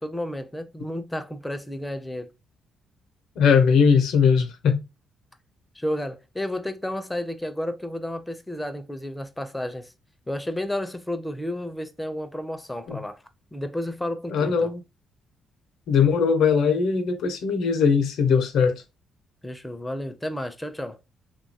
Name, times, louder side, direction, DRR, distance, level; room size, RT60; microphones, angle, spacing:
voice 1, 0.0-2.3 5.8-9.9 10.3-13.2 13.5-14.7 19.4-21.0, left 1 dB, 10° left, 0.4 m, -32 dB
voice 2, 3.4-4.8 12.9-13.0 14.3-14.8 15.9-18.8, left 6 dB, 80° left, 0.6 m, -20 dB
2.8 x 2.3 x 2.6 m
cardioid pair, 90°, 0 cm